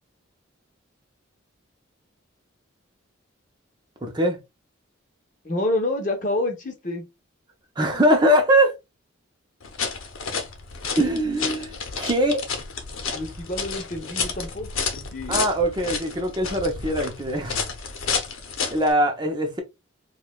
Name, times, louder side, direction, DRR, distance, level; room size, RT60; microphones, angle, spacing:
voice 1, 4.0-4.4 7.8-8.7 10.9-12.4 15.3-17.6 18.7-19.6, equal, 20° right, 0.6 m, -22 dB
voice 2, 5.4-7.0 13.1-15.4, left 2 dB, 40° left, 0.9 m, -28 dB
sound 1, 9.6-18.9, left 5 dB, 85° left, 0.8 m, -31 dB
4.7 x 2.3 x 2.3 m
head